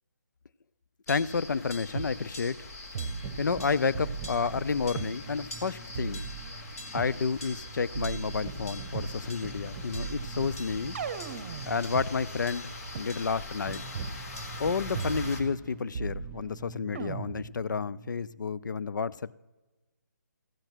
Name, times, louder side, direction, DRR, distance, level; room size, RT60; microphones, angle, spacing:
voice 1, 1.1-2.6 3.4-6.2 6.9-11.0 11.7-12.7 13.0-13.8 14.6-19.3, left 5 dB, 90° left, 19 dB, 0.4 m, -30 dB
sound 1, 1.1-15.4, left 1 dB, 55° left, 1.7 m, -42 dB
sound 2, 1.9-2.1 2.9-3.6 3.9-5.1 5.9-7.2 7.9-9.2 9.9-12.1 12.9-13.0 13.9-14.2 14.9-15.6 15.9-16.6 16.9-17.6, right 6 dB, 35° right, 0.8 m, -37 dB
sound 3, 3.2-18.5, right 3 dB, 10° right, 1.0 m, -47 dB
14.5 x 7.9 x 4.4 m, 1.1 s
hypercardioid pair, 160°, 10 cm